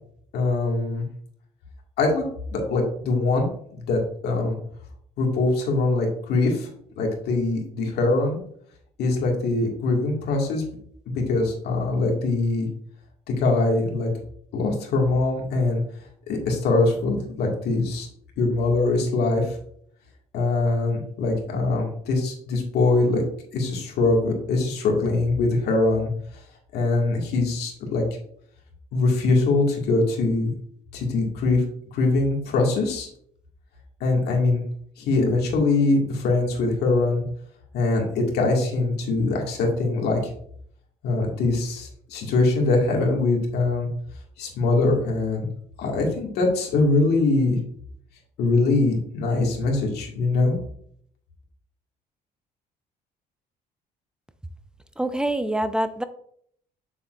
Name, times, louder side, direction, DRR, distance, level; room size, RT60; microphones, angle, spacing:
voice 1, 0.3-1.0 2.0-4.6 5.2-6.7 7.0-8.4 9.0-10.6 11.1-12.7 13.3-14.1 14.5-15.8 16.3-18.1 18.4-19.6 20.3-23.2 23.5-26.1 26.7-28.0 28.9-30.5 30.9-31.6 31.9-33.1 34.0-34.6 35.0-37.2 37.7-40.3 41.0-43.9 44.4-45.5 45.8-47.6 48.4-50.6, left 3 dB, 75° left, 0 dB, 2.2 m, -22 dB
voice 2, 55.0-56.0, right 1 dB, 5° right, 11 dB, 0.5 m, -25 dB
7.0 x 6.9 x 2.6 m, 0.65 s
cardioid pair, 110°, 17 cm